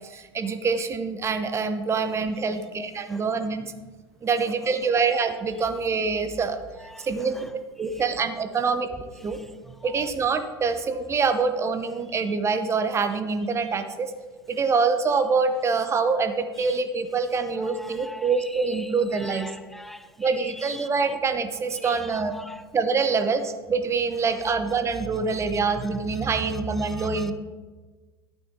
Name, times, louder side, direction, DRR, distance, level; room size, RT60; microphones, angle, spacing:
voice 1, 0.1-3.6 4.2-6.6 7.0-7.3 7.8-8.9 9.2-9.4 9.8-14.1 14.5-19.5 20.2-22.3 22.7-27.3, right 4 dB, 20° right, 8 dB, 0.9 m, -25 dB
voice 2, 6.8-7.5 7.8-8.0 9.3-9.5 9.8-10.1 16.6-16.7 17.6-21.2 21.8-22.6 26.8-27.3, left 1 dB, ahead, 12 dB, 0.7 m, -43 dB
12.0 x 9.0 x 3.7 m, 1.3 s
figure-of-eight pair, 80°, 12 cm